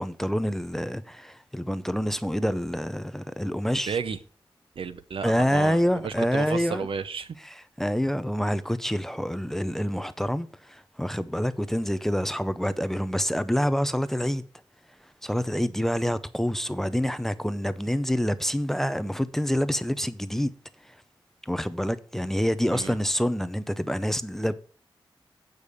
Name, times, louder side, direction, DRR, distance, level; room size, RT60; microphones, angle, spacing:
voice 1, 0.0-4.0 5.2-6.9 7.8-14.4 15.2-20.5 21.4-24.5, equal, 5° left, 0.6 m, -27 dB
voice 2, 3.9-4.2 4.8-7.4 22.7-23.0, right 6 dB, 80° right, 0.8 m, -32 dB
8.3 x 5.3 x 6.4 m
wide cardioid pair, 125°, 9 cm